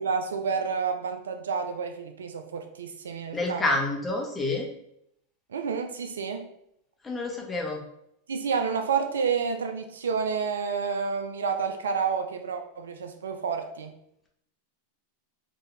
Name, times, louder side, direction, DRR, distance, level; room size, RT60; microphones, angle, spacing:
voice 1, 0.0-3.7 5.5-6.5 8.3-13.9, right 6 dB, 85° right, 6 dB, 0.4 m, -29 dB
voice 2, 3.3-4.7 7.0-7.8, left 2 dB, 20° left, 0 dB, 1.0 m, -28 dB
4.0 x 2.7 x 3.3 m, 0.75 s
hypercardioid pair, 105°, 0 cm